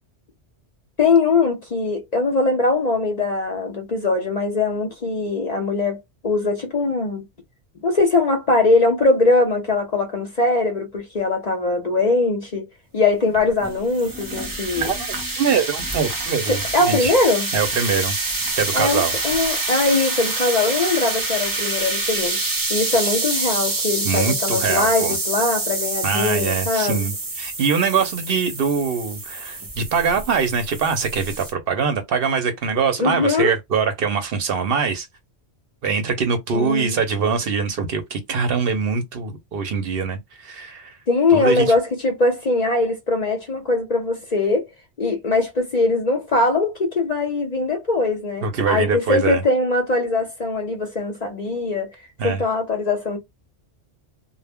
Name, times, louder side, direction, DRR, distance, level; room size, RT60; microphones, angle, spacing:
voice 1, 1.0-7.3 7.8-12.6 12.9-14.9 16.5-17.5 18.7-27.0 33.0-33.5 36.5-37.0 41.1-44.7 45.0-51.9 52.2-53.2, left 3 dB, 45° left, 0.6 m, -21 dB
sound 1, 13.3-31.5, right 3 dB, 30° right, 0.4 m, -26 dB
voice 2, 14.8-17.1 17.5-18.1 18.6-19.2 24.0-25.2 26.0-35.1 35.8-41.0 41.3-41.7 48.4-49.4 52.2-52.4, right 5 dB, 60° right, 0.8 m, -23 dB
2.1 x 2.0 x 3.4 m
omnidirectional pair, 1.2 m